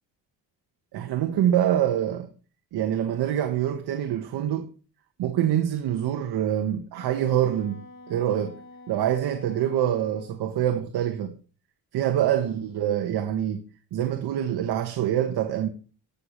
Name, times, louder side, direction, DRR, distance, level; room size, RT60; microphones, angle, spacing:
voice 1, 0.9-2.3 2.7-4.7 5.2-7.8 8.1-8.6 8.9-11.3 11.9-13.6 13.9-15.7, right 10 dB, 80° right, 1.5 m, -25 dB
Wind instrument woodwind instrument, 6.9-10.4, left 2 dB, 85° left, 7.3 m, -47 dB
19.0 x 6.9 x 3.2 m
cardioid pair, 165°, 38 cm